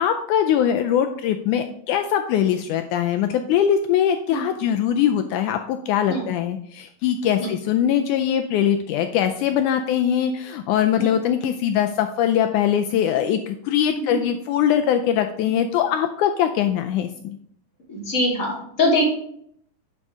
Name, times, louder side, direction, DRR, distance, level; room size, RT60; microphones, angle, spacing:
voice 1, 0.0-17.4, left 9 dB, 85° left, 6 dB, 1.7 m, -22 dB
voice 2, 13.9-14.2 17.9-19.0, left 1 dB, 25° left, -5 dB, 2.6 m, -24 dB
9.9 x 5.4 x 3.6 m, 0.68 s
omnidirectional pair, 4.0 m